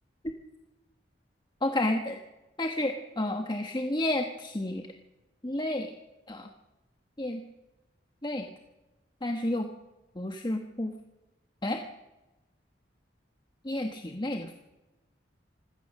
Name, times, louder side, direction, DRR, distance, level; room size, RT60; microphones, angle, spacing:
voice 1, 1.6-2.2 2.6-4.9 5.4-5.9 6.3-6.5 7.2-7.4 8.2-8.5 9.2-9.7 10.2-10.9 11.6-11.8 13.6-14.5, left 1 dB, 25° left, 5 dB, 1.1 m, -30 dB
25.0 x 16.5 x 6.5 m, 1.1 s
head